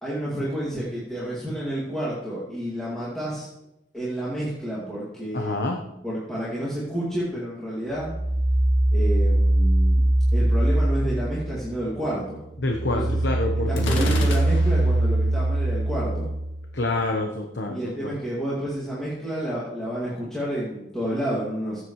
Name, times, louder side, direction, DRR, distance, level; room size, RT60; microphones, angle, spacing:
voice 1, 0.0-3.5 3.9-5.6 6.0-8.1 8.9-12.4 12.9-13.2 13.7-16.3 17.7-21.8, right 1 dB, 5° left, -9 dB, 2.2 m, -30 dB
voice 2, 5.3-5.8 12.6-14.3 16.7-17.9, left 2 dB, 65° left, 2 dB, 1.0 m, -27 dB
sound 1, 8.0-11.9 12.3-16.9, right 1 dB, 25° right, 0.4 m, -22 dB
Gunshot gunfire, 13.8-15.0, left 2 dB, 90° left, 2.0 m, -31 dB
16.0 x 7.9 x 3.2 m, 0.86 s
head